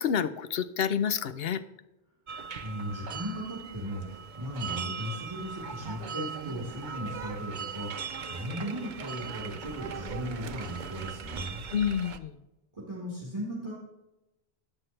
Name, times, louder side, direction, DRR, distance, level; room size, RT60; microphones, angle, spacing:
voice 1, 0.0-1.6 11.7-12.3, left 8 dB, 70° left, 12 dB, 0.9 m, -28 dB
sound 1, 2.3-12.2, right 6 dB, 50° right, 0.7 m, -39 dB
voice 2, 2.6-11.6 12.7-13.7, equal, 25° right, -6 dB, 3.9 m, -37 dB
13.5 x 9.8 x 3.2 m, 0.97 s
omnidirectional pair, 1.1 m